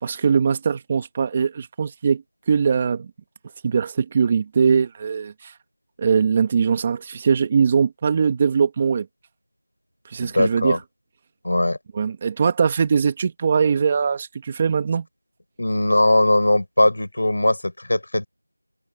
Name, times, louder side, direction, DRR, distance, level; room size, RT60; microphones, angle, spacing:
voice 1, 0.0-2.2 2.5-3.1 3.6-5.5 6.0-9.1 10.1-10.8 11.9-15.1, right 6 dB, 10° right, 2.1 m, -21 dB
voice 2, 10.2-10.8 11.4-11.8 15.6-18.3, left 1 dB, 35° left, 7.8 m, -20 dB
figure-of-eight pair, 180°, 0 cm